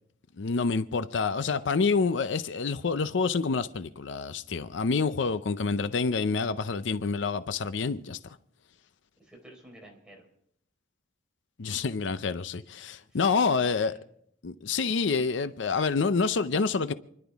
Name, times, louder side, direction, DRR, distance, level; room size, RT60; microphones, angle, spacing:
voice 1, 0.4-8.4 11.6-13.9 14.4-16.9, left 4 dB, 70° left, 0.6 m, -27 dB
voice 2, 9.2-10.3 13.0-14.0, right 1 dB, 5° right, 4.3 m, -51 dB
28.5 x 11.5 x 3.5 m
head